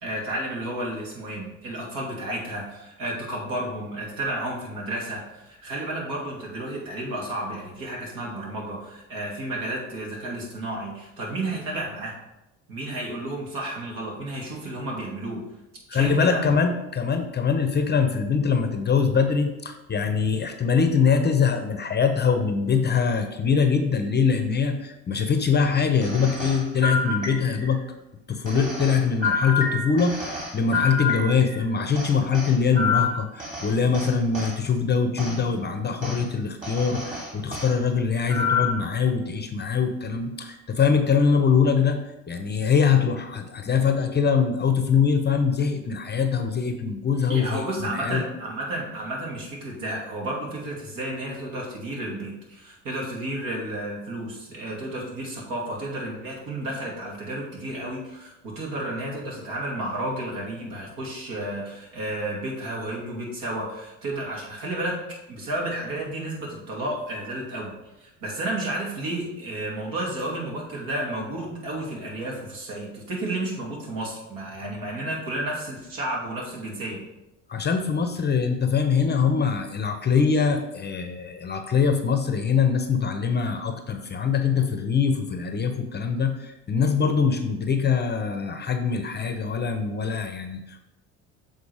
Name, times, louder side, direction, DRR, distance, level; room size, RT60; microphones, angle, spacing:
voice 1, 0.0-12.2 12.7-15.4 15.9-16.5 47.3-77.0, right 1 dB, 60° right, -2 dB, 2.6 m, -32 dB
voice 2, 15.9-27.8 28.3-42.0 42.3-48.2 77.5-90.8, left 6 dB, 25° left, 7 dB, 0.8 m, -23 dB
sound 1, 26.0-27.8 28.4-31.6 31.9-34.6 35.2-35.4 36.0-36.2 36.6-37.7 38.3-38.9, left 4 dB, 20° right, 2.6 m, -28 dB
7.2 x 3.8 x 4.9 m, 0.94 s
hypercardioid pair, 70°, 37 cm